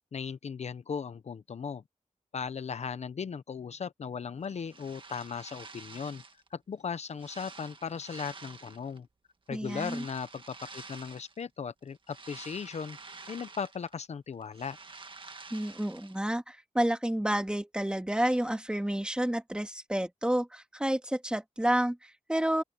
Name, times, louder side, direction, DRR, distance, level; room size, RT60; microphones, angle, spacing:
voice 1, 0.1-1.8 2.3-6.2 6.5-9.1 9.5-13.0 13.3-14.8, left 6 dB, 70° left, 0.8 m, -37 dB
sound 1, 4.4-6.5 6.9-9.0 9.6-11.4 11.8-14.1 14.3-16.3, right 4 dB, 45° right, 1.8 m, -49 dB
voice 2, 9.5-10.0 15.5-22.6, right 1 dB, 10° right, 2.2 m, -30 dB
open air
wide cardioid pair, 95°, 12 cm